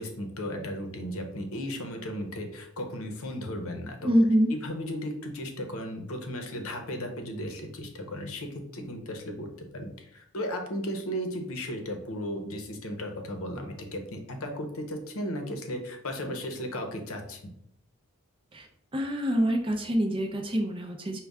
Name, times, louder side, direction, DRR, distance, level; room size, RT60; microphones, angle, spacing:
voice 1, 0.0-4.1 4.5-17.4, equal, 75° left, 4 dB, 0.8 m, -35 dB
voice 2, 4.0-4.5 18.5-18.7 18.9-21.2, equal, 25° right, 4 dB, 0.5 m, -25 dB
5.2 x 2.3 x 3.5 m, 0.74 s
head